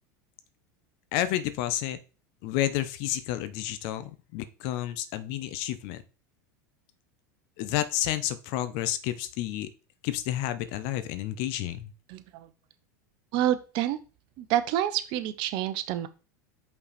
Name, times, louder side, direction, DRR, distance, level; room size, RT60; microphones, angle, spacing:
voice 1, 1.1-2.0 2.4-6.0 7.6-9.7 10.0-11.9, left 13 dB, 60° left, 12 dB, 0.7 m, -30 dB
voice 2, 12.1-12.5 13.3-14.0 14.4-16.1, right 12 dB, 55° right, 11 dB, 0.8 m, -28 dB
5.4 x 4.6 x 4.2 m, 0.33 s
hypercardioid pair, 95°, 10 cm